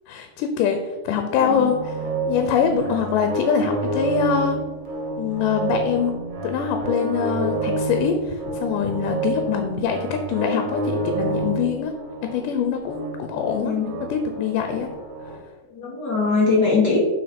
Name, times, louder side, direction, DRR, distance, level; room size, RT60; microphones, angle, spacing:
voice 1, 0.1-0.8 1.1-1.9 2.3-4.6 5.2-6.1 6.4-11.9 12.2-14.9, left 7 dB, 90° left, 6 dB, 2.3 m, -24 dB
sound 1, 1.3-15.4, right 2 dB, 55° right, 1.6 m, -29 dB
voice 2, 13.6-13.9 15.7-17.0, left 4 dB, 50° left, -4 dB, 1.2 m, -21 dB
7.9 x 4.4 x 5.1 m, 1.2 s
omnidirectional pair, 3.7 m